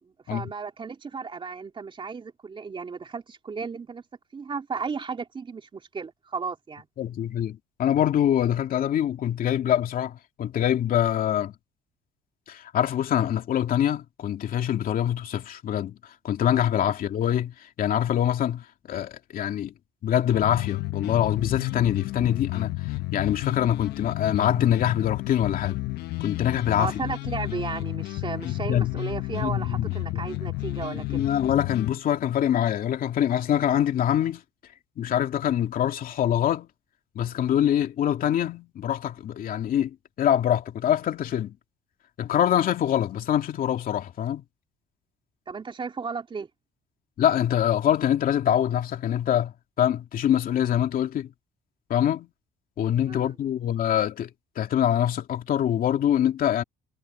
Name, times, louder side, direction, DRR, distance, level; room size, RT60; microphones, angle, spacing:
voice 1, 0.0-4.0 4.3-6.9 26.8-31.2 45.5-46.5 53.1-53.3, right 5 dB, 30° right, 3.2 m, -34 dB
voice 2, 7.0-11.5 12.5-19.7 20.0-25.8 26.2-26.9 28.4-28.9 29.4-30.2 31.1-34.4 35.0-36.7 37.1-41.6 42.2-44.4 47.2-51.3 51.9-52.3 52.8-54.3 54.6-56.6, left 10 dB, 60° left, 2.6 m, -24 dB
sound 1, 20.3-31.9, left 19 dB, 80° left, 0.8 m, -31 dB
cardioid pair, 110°, 17 cm